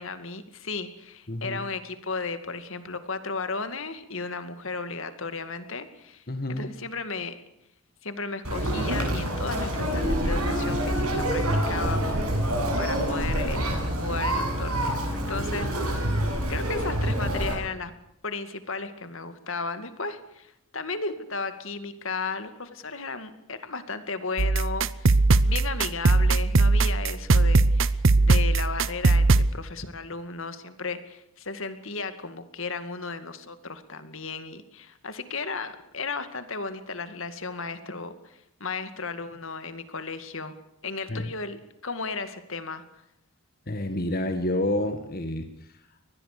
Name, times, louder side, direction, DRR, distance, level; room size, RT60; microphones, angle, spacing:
voice 1, 0.0-6.2 6.5-7.3 8.0-16.1 16.5-17.9 18.2-25.2 25.5-40.5 40.8-41.6 41.8-42.8, left 4 dB, 65° left, 10 dB, 2.2 m, -35 dB
voice 2, 1.3-1.7 6.3-6.7 41.1-41.3 43.7-45.8, left 1 dB, 45° left, 7 dB, 1.6 m, -29 dB
Conversation, 8.4-17.5, right 1 dB, 90° right, 7.9 m, -26 dB
sound 1, 24.4-29.5, right 3 dB, 60° right, 0.8 m, -20 dB
24.0 x 20.0 x 6.8 m, 0.79 s
head